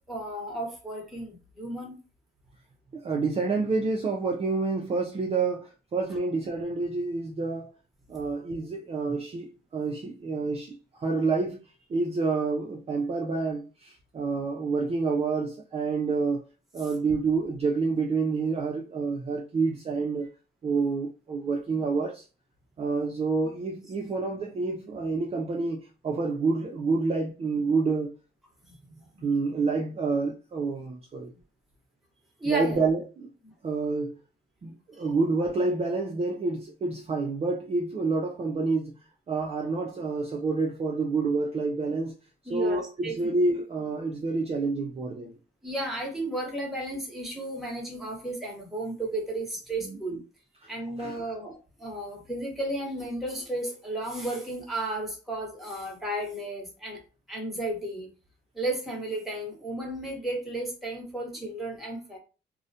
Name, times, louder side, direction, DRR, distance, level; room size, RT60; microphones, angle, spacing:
voice 1, 0.0-2.0 28.7-29.2 32.4-32.8 42.5-43.1 45.6-50.2 50.7-57.0 57.3-58.1 58.5-62.2, right 1 dB, ahead, 1.0 m, -34 dB
voice 2, 2.9-7.7 8.1-9.5 9.7-11.6 11.9-16.5 16.7-20.3 20.6-22.2 22.8-28.1 29.2-31.3 32.5-33.3 33.6-34.2 34.6-39.0 39.3-42.1 42.5-45.3 49.8-50.0 50.6-50.7 51.0-51.3, right 4 dB, 30° right, 0.4 m, -28 dB
2.3 x 2.1 x 2.7 m
cardioid pair, 90°, 20 cm